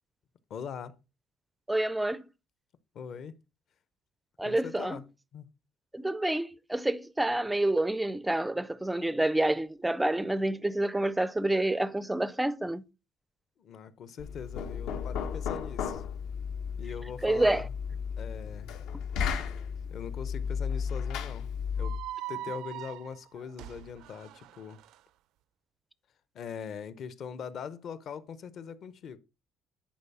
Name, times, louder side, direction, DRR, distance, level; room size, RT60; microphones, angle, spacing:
voice 1, 0.5-0.9 2.9-3.4 4.4-5.1 5.3-5.5 13.6-16.0 16.8-17.7 18.2-18.7 19.9-22.0 22.3-24.8 26.3-29.2, left 7 dB, 45° left, 0.7 m, -41 dB
voice 2, 1.7-2.2 4.4-5.0 5.9-12.8 17.2-17.6, right 1 dB, 5° right, 0.4 m, -28 dB
Knock, 14.2-22.1, left 7 dB, 80° left, 1.5 m, -34 dB
sound 1, 21.8-25.0, right 14 dB, 70° right, 0.4 m, -42 dB
10.5 x 4.7 x 5.6 m
cardioid pair, 170°, 0 cm